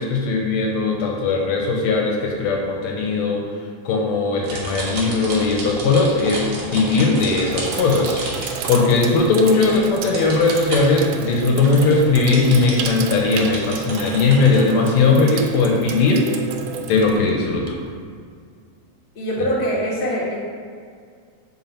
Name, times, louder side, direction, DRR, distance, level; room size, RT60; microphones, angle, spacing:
voice 1, 0.0-3.4 3.9-6.4 6.7-16.4 16.9-17.8 19.4-19.5, left 3 dB, 75° left, 0 dB, 1.8 m, -19 dB
sound 1, 4.4-9.4 9.7-10.9 11.3-11.4 11.6-14.6, right 2 dB, 65° right, 2.2 m, -31 dB
Sink (filling or washing), 6.0-6.4 7.1-18.0, right 8 dB, 85° right, 2.0 m, -32 dB
voice 2, 19.1-20.4, equal, 45° left, -5 dB, 0.9 m, -23 dB
7.9 x 3.7 x 4.3 m, 2.1 s
omnidirectional pair, 3.4 m